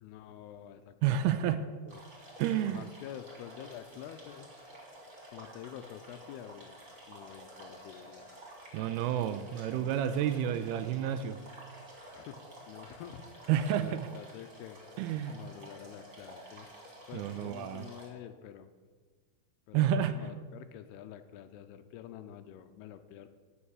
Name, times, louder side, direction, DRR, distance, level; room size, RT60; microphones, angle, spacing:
voice 1, 0.0-2.0 2.6-4.5 5.3-6.8 7.1-8.3 12.1-12.4 12.7-13.3 13.8-14.8 15.1-16.7 17.1-18.7 19.7-23.3, left 10 dB, 85° left, 10 dB, 2.6 m, -48 dB
voice 2, 1.0-1.7 2.4-2.9 8.7-11.4 13.5-14.1 15.0-15.4 17.1-17.9 19.7-20.2, right 10 dB, 80° right, 11 dB, 2.4 m, -30 dB
sound 1, 1.9-18.1, right 1 dB, 20° right, 2.9 m, -51 dB
13.0 x 5.3 x 8.6 m, 1.5 s
omnidirectional pair, 4.8 m